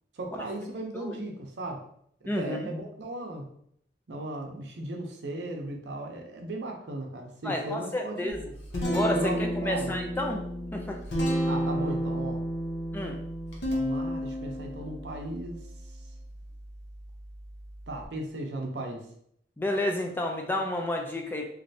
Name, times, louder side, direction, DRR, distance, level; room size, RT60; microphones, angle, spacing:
voice 1, 0.1-1.8 2.4-3.5 4.1-8.3 9.1-9.9 11.5-12.4 13.7-15.6 17.9-19.1, right 1 dB, 75° right, 2 dB, 0.6 m, -36 dB
voice 2, 2.3-2.7 7.4-8.5 8.8-10.4 10.7-11.0 12.9-13.2 19.6-21.5, left 1 dB, 10° left, 2 dB, 0.3 m, -30 dB
Guitar, 8.3-18.1, equal, 75° left, 0.8 m, -32 dB
3.1 x 2.5 x 2.7 m, 0.69 s
head